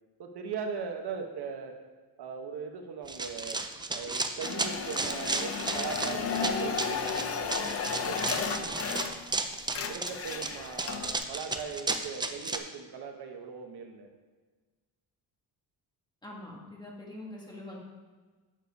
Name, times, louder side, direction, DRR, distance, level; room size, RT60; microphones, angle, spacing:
voice 1, 0.2-1.8 2.2-3.6 3.9-8.9 9.9-14.1, right 6 dB, 70° right, 4 dB, 1.0 m, -39 dB
Run, 3.1-12.6, right 3 dB, 10° right, 0.3 m, -34 dB
sound 1, 4.4-9.4 9.6-11.2, left 6 dB, 35° left, 0.5 m, -34 dB
voice 2, 8.4-8.8 16.2-17.8, left 1 dB, 10° left, -4 dB, 1.6 m, -44 dB
7.4 x 6.8 x 5.2 m, 1.4 s
wide cardioid pair, 165°, 41 cm